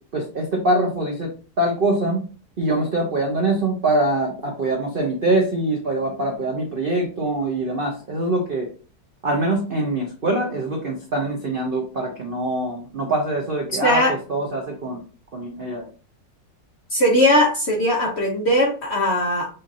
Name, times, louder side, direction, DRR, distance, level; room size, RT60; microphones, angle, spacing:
voice 1, 0.1-1.3 1.6-2.2 2.6-8.7 9.2-14.0 14.3-15.0 15.3-15.8, right 2 dB, 55° right, 0 dB, 0.6 m, -23 dB
voice 2, 13.8-14.1 16.9-19.5, left 1 dB, 50° left, -1 dB, 0.8 m, -19 dB
5.5 x 2.5 x 2.7 m, 0.38 s
omnidirectional pair, 1.9 m